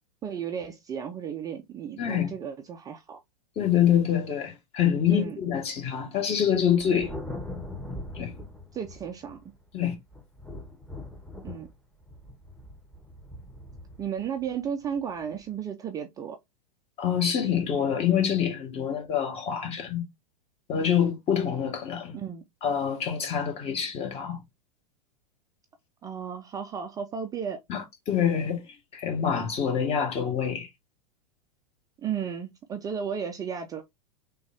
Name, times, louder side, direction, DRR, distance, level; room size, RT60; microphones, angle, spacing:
voice 1, 0.2-3.2 5.1-5.4 8.7-9.4 11.4-11.7 14.0-16.4 22.1-22.4 26.0-27.6 32.0-33.8, right 7 dB, 20° right, 0.4 m, -34 dB
voice 2, 2.0-2.3 3.6-7.1 8.1-8.4 9.7-10.0 17.0-20.0 20.7-22.2 22.6-24.4 27.7-28.7 28.9-30.7, left 8 dB, 30° left, 1.1 m, -26 dB
Thunder, 6.5-9.6 10.1-15.4, left 1 dB, ahead, 0.8 m, -41 dB
3.5 x 2.3 x 3.3 m
figure-of-eight pair, 95°, 20 cm